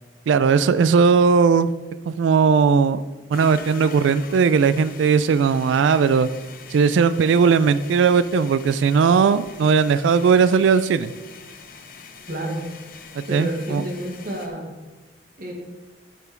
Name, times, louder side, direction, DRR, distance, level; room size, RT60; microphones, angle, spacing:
voice 1, 0.3-1.7 2.1-3.0 3.3-6.3 6.7-11.1 13.2-13.8, right 5 dB, 85° right, 14 dB, 0.3 m, -18 dB
sound 1, 3.3-14.5, left 5 dB, 50° left, 0.9 m, -43 dB
voice 2, 12.3-12.6 13.3-14.7 15.4-15.5, right 1 dB, 50° right, 1 dB, 1.6 m, -29 dB
9.2 x 5.9 x 4.5 m, 1.3 s
head